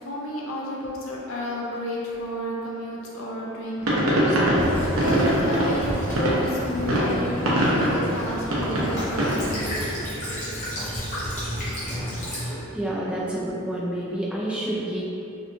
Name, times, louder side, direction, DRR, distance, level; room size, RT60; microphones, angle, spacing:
voice 1, 0.0-4.7 5.0-9.9, left 1 dB, 65° left, -3 dB, 0.5 m, -31 dB
sound 1, 3.8-9.5, right 1 dB, 90° right, 0.6 m, -23 dB
Child speech kid speaking / Bird vocalization bird call bird song / Stream, 4.5-12.5, equal, 35° left, 0.8 m, -31 dB
voice 2, 12.7-15.0, right 1 dB, 5° right, -7 dB, 0.4 m, -28 dB
2.7 x 2.2 x 2.6 m, 2.9 s
head